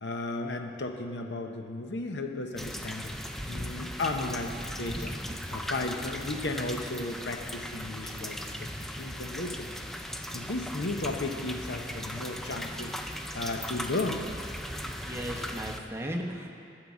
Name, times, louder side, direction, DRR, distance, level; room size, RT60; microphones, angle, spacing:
voice 1, 0.0-3.1 3.5-4.5 4.8-5.2 5.5-9.7 10.3-12.9 13.3-14.2, left 2 dB, 80° left, 4 dB, 0.8 m, -34 dB
sound 1, 2.6-15.8, equal, ahead, 0.4 m, -38 dB
voice 2, 14.8-16.5, equal, 15° right, 0 dB, 0.9 m, -36 dB
13.0 x 4.7 x 7.2 m, 2.5 s
head